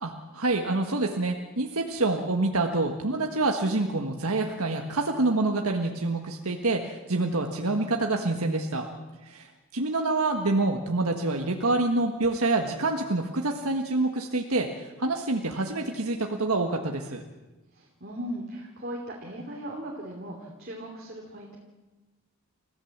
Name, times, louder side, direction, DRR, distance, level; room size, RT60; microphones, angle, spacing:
voice 1, 0.0-8.9 9.2-9.5 9.7-17.2, right 2 dB, 85° right, 3 dB, 1.6 m, -27 dB
voice 2, 17.7-21.6, equal, 45° right, -1 dB, 3.0 m, -38 dB
29.5 x 15.0 x 7.4 m, 1.2 s
head